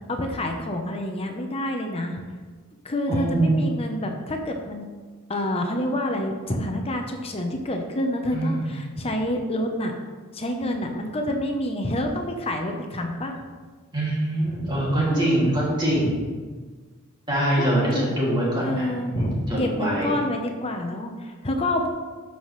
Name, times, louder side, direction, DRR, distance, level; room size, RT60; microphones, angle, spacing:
voice 1, 0.1-2.2 2.8-4.8 5.3-9.9 10.3-13.4 14.5-15.5 16.0-16.1 17.5-17.7 17.9-18.1 18.6-21.9, left 1 dB, 25° left, 3 dB, 0.8 m, -28 dB
voice 2, 3.1-3.7 8.3-8.7 13.9-16.2 17.3-20.1, right 1 dB, 20° right, -6 dB, 2.5 m, -24 dB
12.5 x 5.8 x 3.2 m, 1.4 s
head